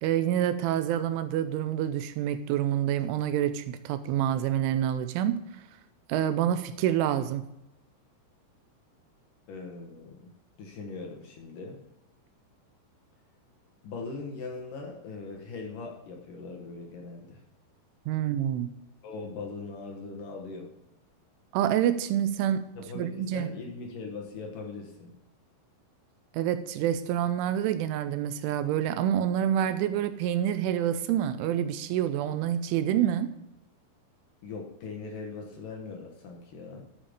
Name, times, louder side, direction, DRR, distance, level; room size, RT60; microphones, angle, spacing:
voice 1, 0.0-5.4 6.1-7.4 18.1-18.7 21.5-22.7 23.0-23.5 26.3-33.3, right 10 dB, 85° right, 11 dB, 3.0 m, -27 dB
voice 2, 9.5-10.3 10.6-11.8 13.8-17.4 19.0-20.7 22.8-25.1 34.4-36.9, left 4 dB, 65° left, 1 dB, 2.2 m, -40 dB
12.5 x 7.2 x 5.1 m, 0.86 s
omnidirectional pair, 5.7 m